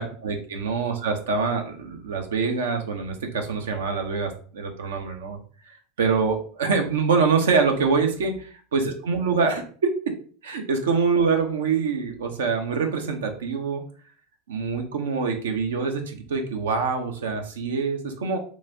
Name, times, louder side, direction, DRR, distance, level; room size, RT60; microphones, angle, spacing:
voice 1, 0.0-5.4 6.0-8.3 8.7-9.6 10.4-13.8 14.5-18.4, right 5 dB, 80° right, 4 dB, 0.6 m, -25 dB
3.1 x 2.3 x 2.6 m, 0.44 s
hypercardioid pair, 80°, 0 cm